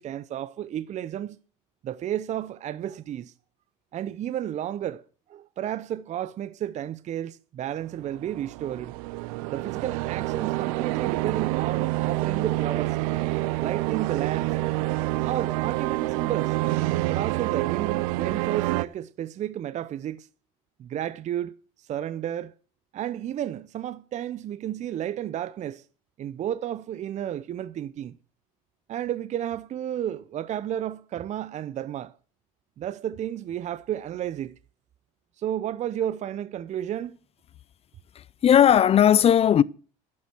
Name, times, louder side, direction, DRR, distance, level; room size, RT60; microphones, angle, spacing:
voice 1, 0.0-1.4 1.8-3.3 3.9-5.0 5.3-9.0 9.5-13.0 13.6-14.5 15.2-16.5 17.1-20.3 20.8-22.5 22.9-25.8 26.2-28.2 28.9-32.1 32.8-34.5 35.4-37.2, right 11 dB, 40° right, 0.6 m, -32 dB
sound 1, 8.0-18.8, right 18 dB, 80° right, 0.6 m, -27 dB
voice 2, 38.2-39.6, left 9 dB, 35° left, 0.5 m, -17 dB
11.0 x 8.7 x 7.7 m
supercardioid pair, 90°, 18 cm